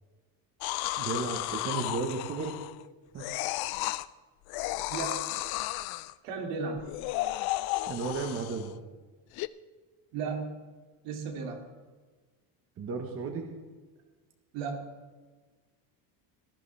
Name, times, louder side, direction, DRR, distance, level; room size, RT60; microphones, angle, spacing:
sound 1, 0.6-2.8 3.2-4.1 4.5-6.1 6.8-8.7 9.4-9.5, left 17 dB, 60° left, 0.5 m, -33 dB
voice 1, 1.0-2.6 3.1-3.2 7.9-8.7 12.8-13.5, right 4 dB, 30° right, 4 dB, 1.2 m, -34 dB
voice 2, 4.9-5.3 6.2-6.8 10.1-10.6 11.0-11.6 14.5-14.8, right 4 dB, 75° right, 2 dB, 2.5 m, -35 dB
18.0 x 12.0 x 3.4 m, 1.4 s
cardioid pair, 165°, 43 cm